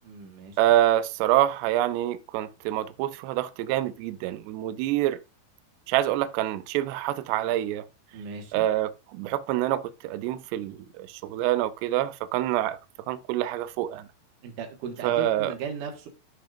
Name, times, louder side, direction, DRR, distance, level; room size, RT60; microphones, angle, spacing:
voice 1, 0.0-0.6 8.1-8.7 14.4-16.1, right 6 dB, 60° right, 2.4 m, -37 dB
voice 2, 0.6-5.2 5.9-7.8 8.5-12.8 13.1-14.1 15.0-15.5, right 13 dB, 85° right, 2.4 m, -26 dB
13.0 x 5.8 x 2.5 m
omnidirectional pair, 5.5 m